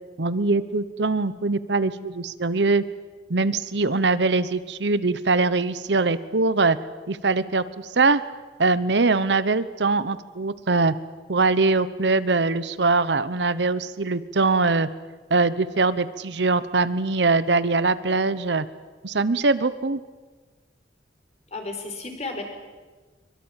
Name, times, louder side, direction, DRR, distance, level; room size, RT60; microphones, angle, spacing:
voice 1, 0.2-2.8 3.3-6.8 7.1-8.2 8.6-10.9 11.3-14.9 15.3-18.7 19.0-20.0, right 3 dB, 70° right, 15 dB, 1.0 m, -22 dB
voice 2, 21.5-22.4, left 3 dB, 40° left, 4 dB, 4.9 m, -33 dB
23.5 x 23.0 x 9.0 m, 1.3 s
head